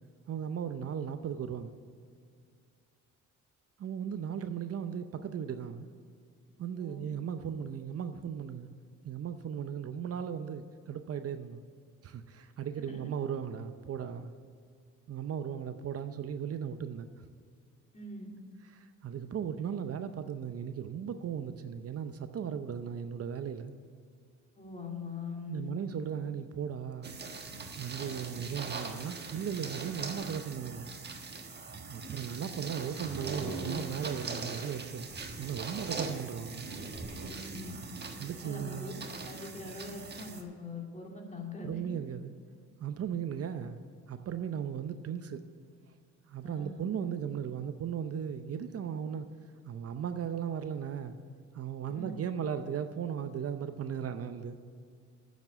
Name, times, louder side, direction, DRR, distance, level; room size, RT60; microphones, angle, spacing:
voice 1, 0.3-1.8 3.8-5.9 6.6-8.7 9.0-11.6 12.0-14.3 15.1-17.3 18.7-23.7 25.5-27.2 27.8-31.0 31.9-35.1 35.4-36.7 38.2-39.0 41.6-42.3 42.8-43.8 44.1-45.4 46.3-49.3 49.6-51.2 51.5-54.6, right 8 dB, 50° right, 9 dB, 0.7 m, -37 dB
voice 2, 17.9-18.3 24.6-25.8 31.9-32.1 37.2-37.8 38.4-38.9 39.2-41.9 46.4-46.9 51.8-52.1, left 3 dB, 25° left, 0 dB, 2.4 m, -43 dB
sound 1, 27.0-40.4, right 4 dB, 35° right, 1.4 m, -42 dB
sound 2, 27.7-27.8 28.6-28.7 29.5-31.0 33.0-34.3 35.0-35.8 36.2-36.3 36.6-37.6 38.0-38.5, right 3 dB, 70° right, 2.1 m, -43 dB
9.3 x 7.4 x 8.0 m, 2.2 s
cardioid pair, 90°, 30 cm